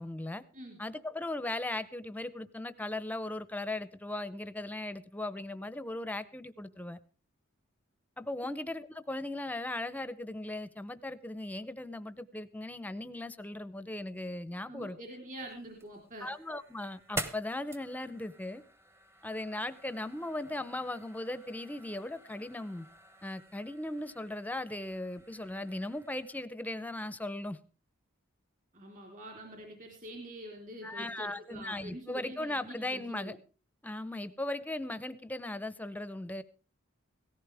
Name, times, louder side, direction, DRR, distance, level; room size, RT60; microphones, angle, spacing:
voice 1, 0.0-0.4 0.8-7.0 8.2-15.0 16.2-18.6 19.2-22.9 23.2-27.6 30.8-33.4 33.8-36.4, left 1 dB, 10° left, 14 dB, 0.7 m, -38 dB
voice 2, 14.7-16.3 28.7-33.4, right 1 dB, 40° right, 1 dB, 3.8 m, -46 dB
sound 1, 15.5-26.4, right 1 dB, 15° right, 1.0 m, -47 dB
17.5 x 15.0 x 3.5 m, 0.36 s
head